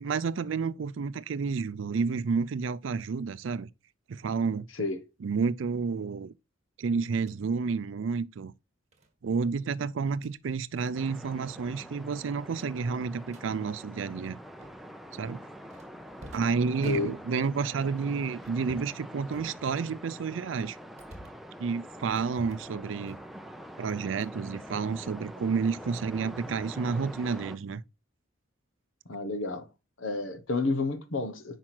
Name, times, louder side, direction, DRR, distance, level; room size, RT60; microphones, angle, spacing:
voice 1, 0.0-3.7 4.1-4.7 5.2-6.3 6.8-8.5 9.2-14.4 15.1-15.4 16.3-20.8 21.6-23.2 23.8-27.8, right 5 dB, 75° right, 0.4 m, -30 dB
sound 1, 7.1-7.4 8.9-9.1 10.0-10.4 10.8-11.0 11.2-11.5 11.7-11.8 12.5-13.5 14.6-15.0 15.7-17.6 18.4-19.0 19.3-20.0 20.5-21.5 22.1-22.7 23.0-23.5 23.8-24.4 24.7-25.5, right 1 dB, 35° right, 1.5 m, -51 dB
sound 2, 10.9-27.6, equal, ahead, 0.5 m, -45 dB
voice 2, 16.8-17.1 29.1-29.7 30.0-31.6, left 3 dB, 85° left, 1.1 m, -30 dB
6.0 x 5.0 x 4.4 m
head